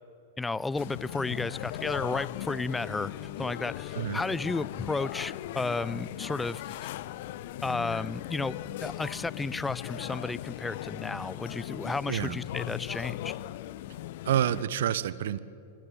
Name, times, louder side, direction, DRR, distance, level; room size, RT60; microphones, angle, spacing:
voice 1, 0.4-3.1 3.4-6.6 7.6-13.4, left 3 dB, 10° left, 21 dB, 0.6 m, -33 dB
sound 1, 0.7-14.6, left 14 dB, 50° left, 0.7 m, -38 dB
voice 2, 12.1-12.4 14.2-15.4, right 10 dB, 55° right, 19 dB, 0.9 m, -28 dB
26.0 x 24.5 x 7.8 m, 2.8 s
figure-of-eight pair, 95°, 0 cm